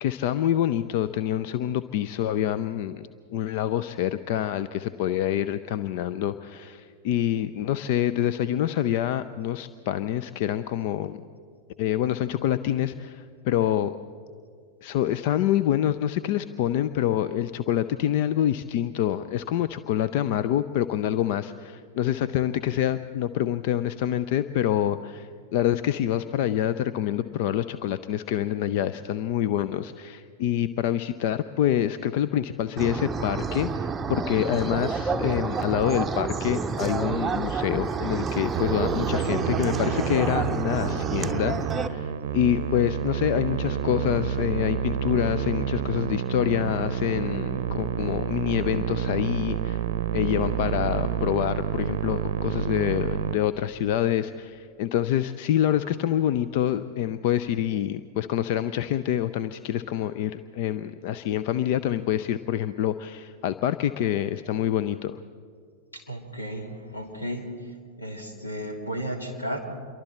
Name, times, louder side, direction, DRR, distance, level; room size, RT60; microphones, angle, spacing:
voice 1, 0.0-11.3 11.8-13.9 14.8-49.8 50.1-65.2, left 11 dB, 50° left, 13 dB, 0.6 m, -26 dB
sound 1, 32.8-41.9, right 5 dB, 15° right, 0.8 m, -29 dB
Musical instrument, 38.5-53.4, right 9 dB, 55° right, 0.7 m, -29 dB
voice 2, 65.9-67.5 68.0-69.6, equal, 80° left, 4 dB, 2.9 m, -34 dB
27.5 x 23.5 x 4.4 m, 2.1 s
figure-of-eight pair, 90°, 0 cm